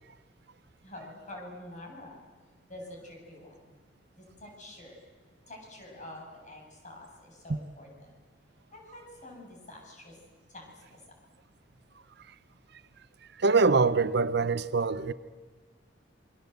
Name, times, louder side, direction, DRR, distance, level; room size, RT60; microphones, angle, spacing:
voice 1, 0.8-2.2 2.7-3.7 4.2-5.0 5.5-8.1 8.7-10.2 10.5-11.0, left 1 dB, 40° left, 7.8 m, -47 dB
voice 2, 13.4-15.1, right 4 dB, 60° right, 0.8 m, -24 dB
28.0 x 23.0 x 8.2 m
head